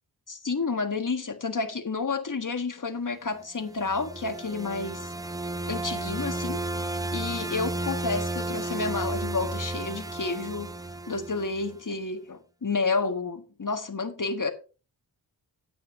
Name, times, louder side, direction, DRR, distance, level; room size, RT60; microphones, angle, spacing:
voice 1, 0.3-5.1 5.7-10.7 11.1-14.5, left 4 dB, 45° left, 1.6 m, -30 dB
sound 1, 3.6-11.8, right 2 dB, 10° right, 0.5 m, -33 dB
9.3 x 9.1 x 3.7 m
cardioid pair, 45°, 44 cm